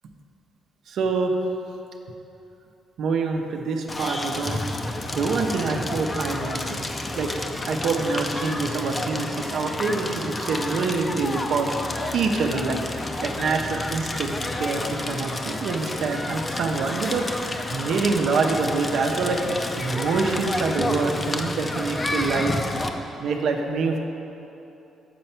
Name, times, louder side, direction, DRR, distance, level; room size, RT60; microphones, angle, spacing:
voice 1, 0.9-1.4 3.0-4.6 5.1-6.9 7.2-7.3 7.7-11.7 12.1-12.8 13.2-17.4 17.7-19.4 19.8-22.6 23.2-24.0, right 4 dB, 70° right, 3 dB, 0.7 m, -25 dB
Crackle, 3.9-22.9, left 2 dB, 25° left, 0.5 m, -30 dB
7.7 x 4.3 x 5.7 m, 2.9 s
cardioid pair, 90°, 0 cm